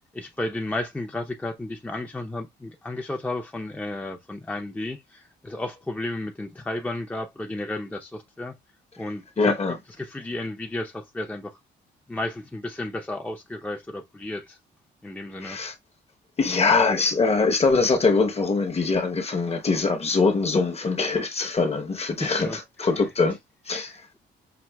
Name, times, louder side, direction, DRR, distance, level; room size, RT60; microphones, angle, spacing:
voice 1, 0.1-8.5 9.0-9.6 10.0-11.6 12.1-14.6 15.0-15.6 22.2-22.6 23.8-24.2, left 2 dB, 5° left, 0.6 m, -33 dB
voice 2, 9.4-9.8 15.4-15.7 16.4-23.4 23.7-24.0, left 4 dB, 30° left, 0.9 m, -23 dB
5.8 x 2.4 x 2.2 m
cardioid pair, 90°, 20 cm